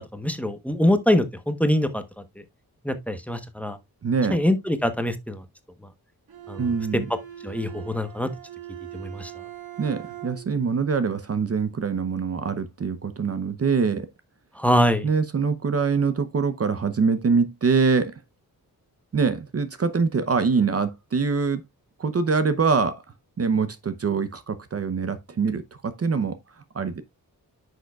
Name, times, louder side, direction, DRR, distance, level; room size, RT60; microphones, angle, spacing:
voice 1, 0.0-2.0 2.8-3.8 4.3-5.4 6.5-6.6 7.1-7.2 7.4-8.3 8.9-9.3 14.6-15.1, left 1 dB, 5° left, 1.0 m, -23 dB
voice 2, 4.0-4.4 6.6-7.0 9.8-14.1 15.0-18.2 19.1-21.6 22.0-23.0 23.4-26.4 26.7-27.0, right 5 dB, 40° right, 0.7 m, -24 dB
Bowed string instrument, 6.3-10.6, right 13 dB, 85° right, 2.0 m, -41 dB
9.8 x 6.5 x 2.3 m
wide cardioid pair, 125°, 36 cm